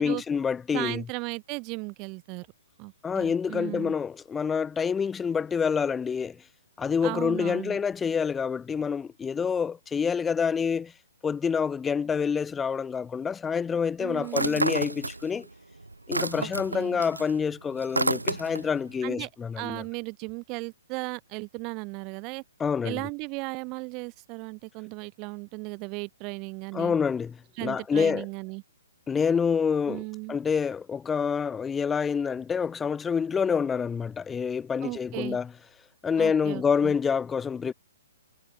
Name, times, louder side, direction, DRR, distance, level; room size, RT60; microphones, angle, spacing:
voice 1, 0.0-1.0 3.0-6.4 6.8-10.9 11.2-15.5 16.1-19.8 22.6-23.1 26.7-28.2 29.1-30.0 30.3-35.5 36.0-37.7, left 6 dB, 10° left, 0.8 m, -27 dB
voice 2, 0.7-2.5 2.8-3.9 7.0-7.8 14.0-14.6 16.3-17.0 19.0-19.3 19.6-22.4 22.8-26.9 27.6-28.6 29.9-30.4 34.8-35.4 36.2-36.9, right 30 dB, 30° right, 1.5 m, -36 dB
sound 1, 14.3-15.5 15.8-18.8, right 2 dB, 90° right, 0.5 m, -29 dB
figure-of-eight pair, 125°, 0 cm